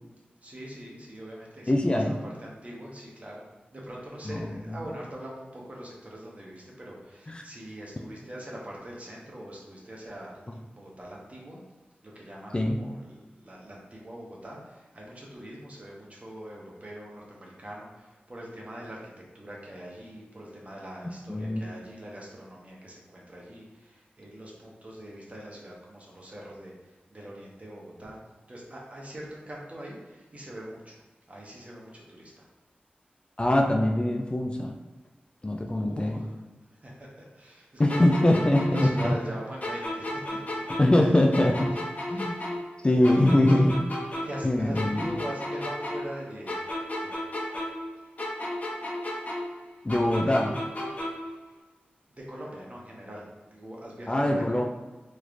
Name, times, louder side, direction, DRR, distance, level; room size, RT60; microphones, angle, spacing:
voice 1, 0.4-3.4 3.7-11.6 12.0-28.2 28.5-31.0 31.3-32.4 35.8-36.3 36.7-38.4 38.7-41.2 42.1-42.4 43.0-43.4 44.2-46.6 47.0-47.1 52.1-54.7, right 1 dB, 40° right, -3 dB, 1.1 m, -42 dB
voice 2, 1.7-2.2 4.2-4.8 7.3-7.4 12.5-12.8 21.3-21.6 33.4-34.7 35.4-36.2 37.8-39.1 40.8-41.7 42.1-42.4 42.8-43.8 44.4-45.1 49.8-50.6 54.1-54.6, left 1 dB, 25° left, 2 dB, 0.4 m, -23 dB
sound 1, 37.9-41.0 41.3-44.5 44.7-47.9 48.2-51.3, left 1 dB, 45° left, 0.9 m, -34 dB
3.2 x 3.1 x 2.5 m, 1.2 s
cardioid pair, 40°, 4 cm